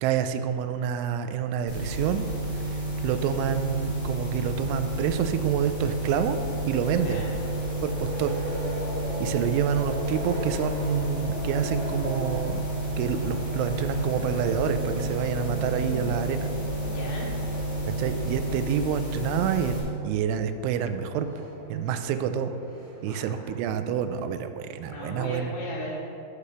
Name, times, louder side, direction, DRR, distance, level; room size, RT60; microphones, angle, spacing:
voice 1, 0.0-2.3 2.5-6.4 6.7-7.2 7.8-8.3 9.2-16.5 17.9-19.8 20.0-22.5 23.0-25.5, right 8 dB, 90° right, 9 dB, 3.0 m, -28 dB
sound 1, 1.7-19.8, right 1 dB, 50° left, 0.8 m, -31 dB
sound 2, 4.5-23.6, equal, 65° right, 3.9 m, -39 dB
voice 2, 16.8-17.5 19.6-19.7 23.1-23.5 24.8-26.0, left 2 dB, 80° left, -7 dB, 3.4 m, -38 dB
8.4 x 4.9 x 6.7 m, 2.8 s
omnidirectional pair, 5.3 m